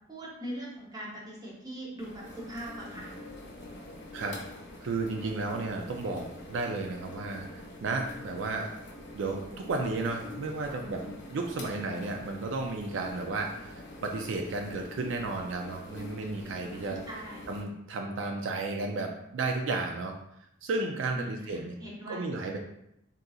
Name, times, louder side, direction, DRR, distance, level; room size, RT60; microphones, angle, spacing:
voice 1, 0.1-3.1 10.7-10.8 16.6-17.5 21.1-22.2, right 1 dB, 20° right, -4 dB, 0.7 m, -41 dB
sound 1, 2.0-17.6, left 2 dB, 60° left, 0.7 m, -45 dB
voice 2, 4.8-7.5 7.8-8.7 9.1-11.0 11.3-17.0 17.5-20.1 20.6-21.7 22.1-22.6, right 3 dB, 70° right, 3 dB, 0.4 m, -33 dB
3.7 x 2.7 x 2.3 m, 0.79 s
head